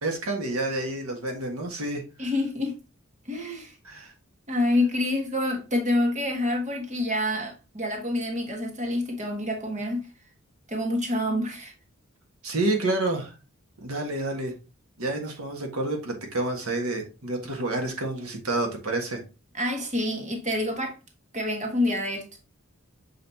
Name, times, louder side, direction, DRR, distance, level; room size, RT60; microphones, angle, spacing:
voice 1, 0.0-2.3 3.8-4.1 12.4-13.3 13.8-14.5 15.0-19.2, right 2 dB, 85° right, 1.6 m, -29 dB
voice 2, 2.2-2.7 3.3-3.7 4.5-10.1 10.7-11.7 19.5-21.0 21.3-22.3, left 1 dB, 35° right, 1.5 m, -27 dB
6.8 x 4.9 x 2.8 m
head